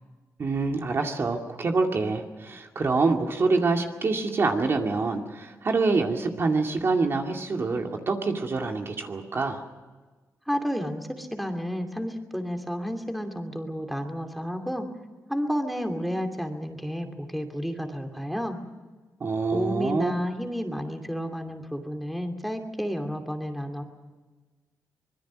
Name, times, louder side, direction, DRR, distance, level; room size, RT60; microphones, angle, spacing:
voice 1, 0.4-9.6 19.2-20.1, right 3 dB, 45° right, 3 dB, 2.3 m, -26 dB
voice 2, 10.5-14.9 15.3-18.6 19.5-23.8, equal, ahead, 4 dB, 2.6 m, -31 dB
25.0 x 21.5 x 6.3 m, 1.3 s
wide cardioid pair, 120°, 6 cm